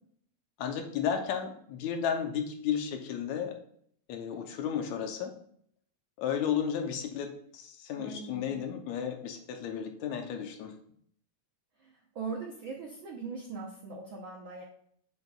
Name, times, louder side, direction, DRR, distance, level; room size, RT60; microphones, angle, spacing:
voice 1, 0.6-3.6 4.1-5.4 6.2-10.8, left 8 dB, 80° left, 5 dB, 2.0 m, -33 dB
voice 2, 7.9-8.7 11.8-14.6, right 4 dB, 75° right, -1 dB, 1.1 m, -41 dB
7.8 x 7.5 x 2.3 m, 0.64 s
omnidirectional pair, 3.4 m